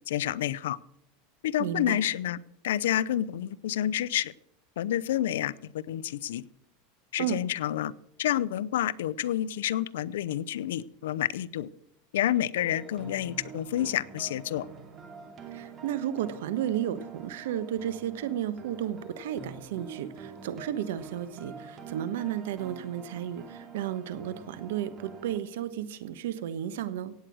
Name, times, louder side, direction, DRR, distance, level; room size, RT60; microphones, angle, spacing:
voice 1, 0.1-0.8 1.4-2.4 2.6-4.3 4.8-6.4 7.1-7.9 8.2-11.7 12.1-14.7, left 12 dB, 90° left, 18 dB, 0.7 m, -29 dB
voice 2, 1.6-2.0 7.2-7.4 15.5-27.1, right 10 dB, 80° right, 14 dB, 1.3 m, -33 dB
sound 1, 12.6-25.4, right 5 dB, 30° right, 2.5 m, -46 dB
16.5 x 9.2 x 6.3 m, 0.76 s
supercardioid pair, 140°, 0 cm